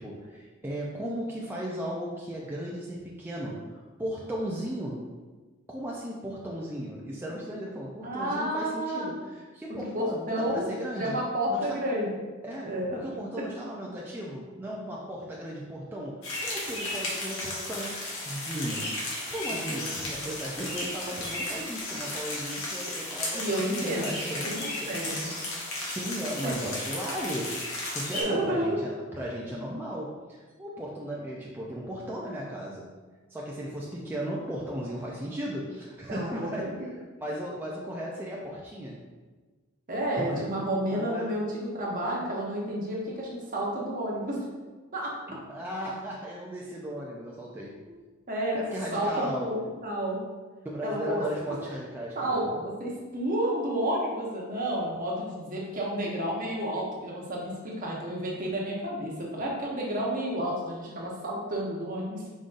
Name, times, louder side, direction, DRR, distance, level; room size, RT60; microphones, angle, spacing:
voice 1, 0.0-5.1 5.7-11.1 11.5-11.8 12.4-23.5 23.8-25.0 26.0-27.6 27.9-33.0 33.3-36.9 37.2-39.0 40.2-40.6 40.9-41.3 45.3-47.8 48.5-49.6 50.6-52.4, equal, 10° right, -4 dB, 0.4 m, -36 dB
voice 2, 8.0-9.1 9.9-10.6 11.0-12.2 12.7-13.0 13.4-13.5 19.5-20.2 23.3-25.3 26.4-26.6 28.1-28.8 36.1-36.5 39.9-44.5 44.9-45.1 48.3-48.6 48.9-50.2 50.8-51.5 52.1-62.2, right 1 dB, 40° right, -3 dB, 1.0 m, -31 dB
sound 1, 16.2-28.2, left 1 dB, 80° left, 1.3 m, -34 dB
5.1 x 3.8 x 2.5 m, 1.3 s
head